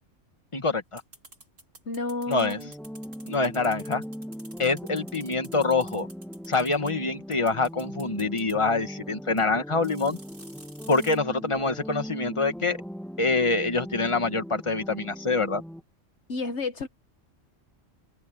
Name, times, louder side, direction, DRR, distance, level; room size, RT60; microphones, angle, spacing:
voice 1, 0.5-1.0 2.3-2.6 3.3-4.0 4.6-6.1 6.5-10.2 10.9-12.8 13.2-15.6, left 3 dB, 25° left, 1.7 m, -25 dB
sound 1, 1.0-6.9 7.3-8.5 9.4-9.5 9.8-11.2, right 2 dB, 75° right, 7.2 m, -49 dB
voice 2, 1.9-2.7 16.3-16.9, left 3 dB, 65° left, 1.4 m, -31 dB
sound 2, 2.6-15.8, equal, ahead, 1.6 m, -40 dB
omnidirectional pair, 1.3 m